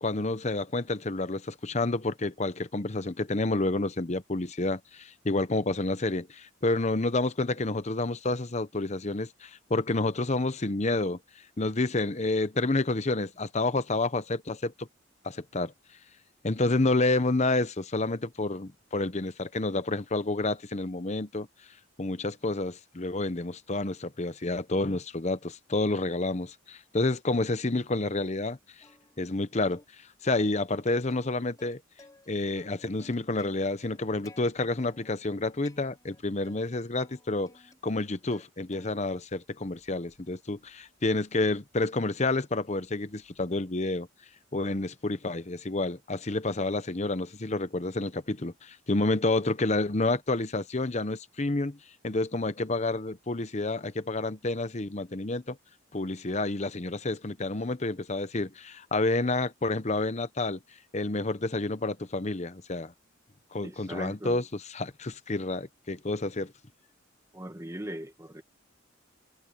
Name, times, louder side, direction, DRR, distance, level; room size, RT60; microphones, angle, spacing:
voice 1, 0.0-11.2 11.6-14.9 15.2-15.7 16.4-21.5 22.0-28.6 29.2-29.8 30.2-31.8 32.3-37.5 37.8-44.1 44.5-51.8 52.0-55.6 55.9-60.6 60.9-62.9 63.5-66.5, left 2 dB, 35° left, 0.9 m, -29 dB
Plucked string instrument, 28.8-29.4 29.7-29.9 30.3-32.3 32.6-34.4 34.8-35.3 35.6-36.6 37.0-38.5 38.7-39.2 39.6-43.9, left 2 dB, 15° left, 4.3 m, -57 dB
voice 2, 63.6-64.4 67.3-68.4, right 1 dB, 15° right, 1.5 m, -40 dB
head